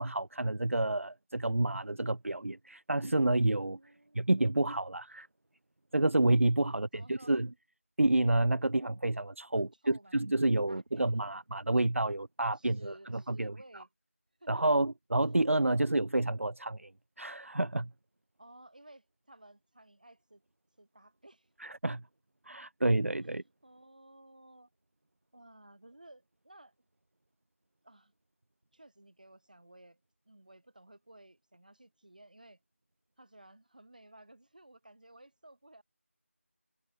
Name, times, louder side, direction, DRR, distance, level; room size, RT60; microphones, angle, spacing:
voice 1, 0.0-3.8 4.2-5.3 5.9-7.5 8.0-13.5 14.5-16.9 17.2-17.9 21.6-22.0 22.5-23.4, right 2 dB, 70° right, 0.6 m, -29 dB
voice 2, 3.7-4.3 6.6-7.4 9.5-10.2 10.7-11.1 12.5-13.9 14.4-14.6 15.7-15.8 18.4-20.4 20.8-21.5 23.6-24.7 25.3-26.7 27.8-28.1 28.7-30.0 30.3-32.6 33.2-35.8, right 1 dB, 35° right, 7.2 m, -56 dB
figure-of-eight pair, 180°, 8 cm